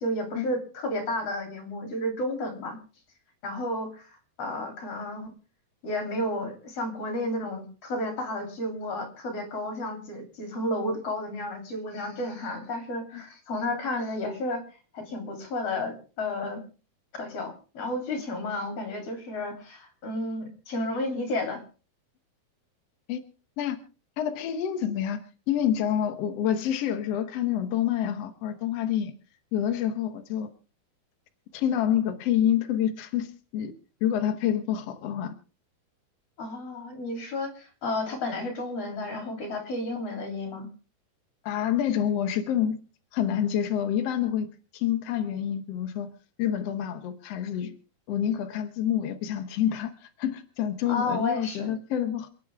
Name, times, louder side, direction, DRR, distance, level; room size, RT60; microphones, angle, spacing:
voice 1, 0.0-2.8 3.4-5.3 5.8-14.6 14.9-16.6 17.1-21.6 36.4-40.7 50.9-51.8, left 1 dB, 40° left, 4 dB, 3.8 m, -32 dB
voice 2, 24.2-25.2 25.5-29.1 29.5-30.5 31.5-33.7 34.0-35.3 41.4-42.8 43.1-44.5 44.7-46.1 46.4-47.7 48.1-52.3, left 10 dB, 80° left, 6 dB, 1.4 m, -27 dB
28.0 x 9.5 x 3.6 m, 0.36 s
omnidirectional pair, 4.6 m